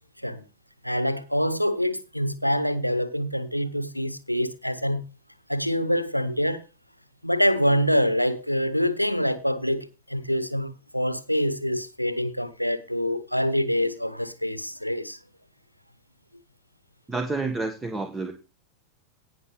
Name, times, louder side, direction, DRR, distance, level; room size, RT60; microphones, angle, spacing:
voice 1, 0.8-5.0 5.5-6.7 7.2-15.2, equal, 90° left, 0.9 m, -25 dB
voice 2, 17.1-18.3, right 3 dB, 10° right, 1.4 m, -29 dB
18.0 x 6.2 x 3.3 m
figure-of-eight pair, 90°, 0 cm